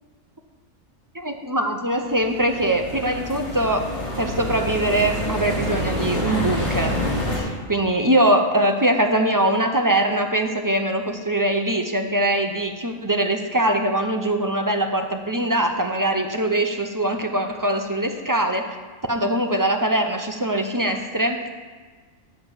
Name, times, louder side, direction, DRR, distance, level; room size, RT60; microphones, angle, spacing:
voice 1, 1.1-3.9 4.2-18.6 19.1-21.5, right 1 dB, 20° right, 4 dB, 0.5 m, -22 dB
sound 1, 2.0-7.4, left 1 dB, 50° left, 2.4 m, -27 dB
8.8 x 6.6 x 7.2 m, 1.4 s
omnidirectional pair, 1.3 m